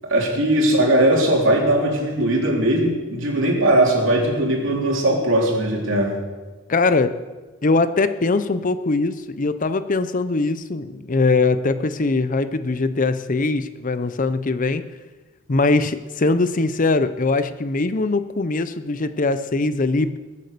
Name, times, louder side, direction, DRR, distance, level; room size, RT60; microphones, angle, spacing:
voice 1, 0.1-6.1, right 1 dB, 65° right, -1 dB, 3.9 m, -19 dB
voice 2, 6.7-7.1 7.6-14.8 15.5-20.2, left 3 dB, 40° left, 12 dB, 0.6 m, -21 dB
21.5 x 8.5 x 6.7 m, 1.3 s
head